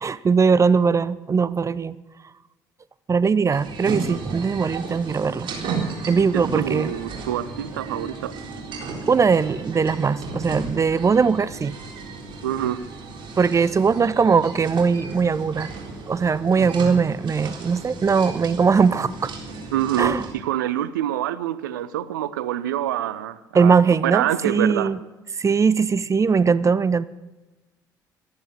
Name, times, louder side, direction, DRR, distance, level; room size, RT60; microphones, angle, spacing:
voice 1, 0.0-2.0 3.1-5.5 6.1-6.9 9.1-11.7 13.4-15.7 16.1-19.3 20.0-20.2 23.5-25.0 25.4-27.0, right 5 dB, 30° right, 18 dB, 0.7 m, -20 dB
sound 1, 3.5-20.3, right 4 dB, 55° right, 3.9 m, -34 dB
voice 2, 6.3-8.3 12.4-12.8 19.7-23.7 24.0-24.9, right 12 dB, 80° right, 15 dB, 0.7 m, -26 dB
14.5 x 12.5 x 6.5 m, 1.1 s
hypercardioid pair, 55°, 10 cm